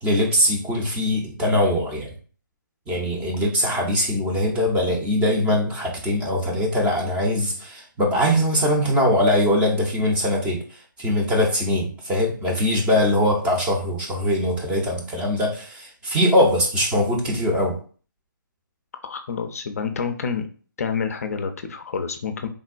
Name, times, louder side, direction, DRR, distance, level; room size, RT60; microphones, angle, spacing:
voice 1, 0.0-2.1 2.9-17.8, left 1 dB, 10° right, -1 dB, 0.5 m, -22 dB
voice 2, 19.0-20.5 20.8-22.5, left 6 dB, 45° left, 7 dB, 0.4 m, -28 dB
3.4 x 2.1 x 2.4 m, 0.42 s
figure-of-eight pair, 145°, 11 cm